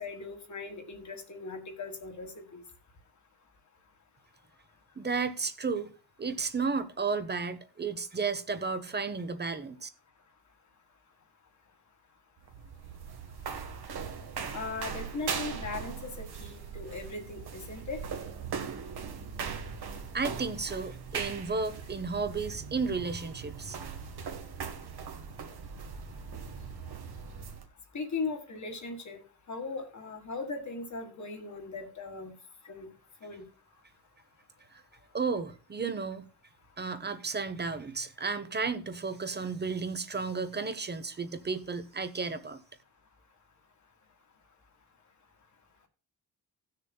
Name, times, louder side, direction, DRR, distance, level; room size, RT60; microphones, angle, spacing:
voice 1, 0.0-2.6 14.5-18.0 27.9-29.2 29.5-32.3 32.6-32.9 33.2-33.5, left 4 dB, 50° left, 1.7 m, -38 dB
voice 2, 5.0-5.9 6.2-9.9 19.4-19.5 20.1-23.8 34.7-34.8 35.1-36.3 36.8-42.6, right 4 dB, 30° right, 0.7 m, -33 dB
sound 1, 12.4-27.7, right 6 dB, 90° right, 1.4 m, -40 dB
17.5 x 6.7 x 2.3 m
wide cardioid pair, 165°, 37 cm